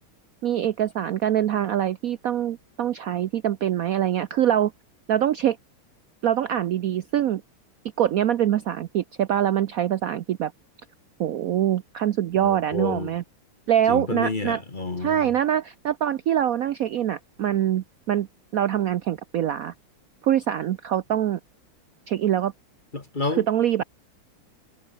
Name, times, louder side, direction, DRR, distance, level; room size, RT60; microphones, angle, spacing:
voice 1, 0.4-4.7 5.1-5.6 6.2-7.4 8.0-10.5 11.2-13.2 13.7-14.6 15.0-18.3 18.5-19.7 20.2-21.4 22.1-22.5 23.4-23.8, right 10 dB, 85° right, 0.7 m, -24 dB
voice 2, 12.4-13.1 13.9-15.3 22.9-23.5, left 3 dB, 25° left, 1.7 m, -29 dB
omnidirectional pair, 2.3 m